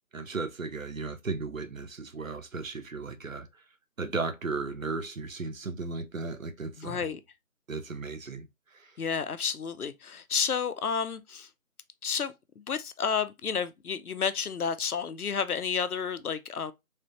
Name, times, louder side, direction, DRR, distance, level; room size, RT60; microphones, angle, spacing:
voice 1, 0.1-3.6 4.0-7.1 7.7-9.0, right 4 dB, 60° right, 0.8 m, -35 dB
voice 2, 6.8-7.2 9.0-11.5 12.0-16.7, left 6 dB, 75° left, 0.7 m, -31 dB
3.6 x 3.3 x 2.9 m
figure-of-eight pair, 175°, 44 cm